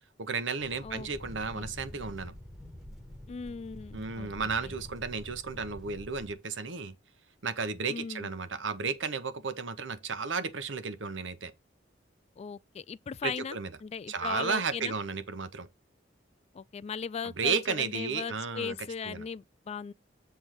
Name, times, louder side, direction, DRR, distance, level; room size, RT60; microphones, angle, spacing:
voice 1, 0.2-2.3 3.9-6.9 7.4-11.5 13.2-13.7 14.1-15.7 17.2-18.8 19.0-19.3, right 5 dB, 75° right, 0.9 m, -33 dB
sound 1, 0.6-6.3, left 1 dB, ahead, 1.3 m, -46 dB
voice 2, 3.3-4.3 4.6-4.7 7.9-8.3 12.4-14.9 16.5-19.9, left 6 dB, 35° left, 0.3 m, -38 dB
7.5 x 3.5 x 6.4 m
head